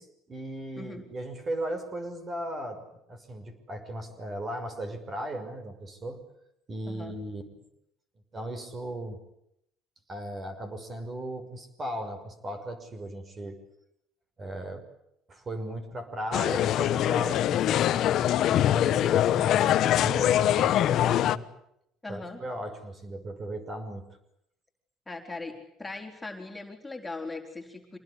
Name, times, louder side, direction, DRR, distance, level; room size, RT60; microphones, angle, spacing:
voice 1, 0.0-6.2 6.7-7.4 8.3-9.2 10.1-13.6 14.4-14.9 15.3-21.5 22.1-24.1, right 1 dB, 30° right, 8 dB, 6.1 m, -37 dB
sound 1, 16.3-21.4, left 11 dB, 60° left, 1.2 m, -23 dB
voice 2, 22.0-22.4 25.1-28.0, left 3 dB, 10° left, 2 dB, 4.4 m, -39 dB
26.5 x 20.0 x 9.9 m, 0.78 s
supercardioid pair, 100°, 0 cm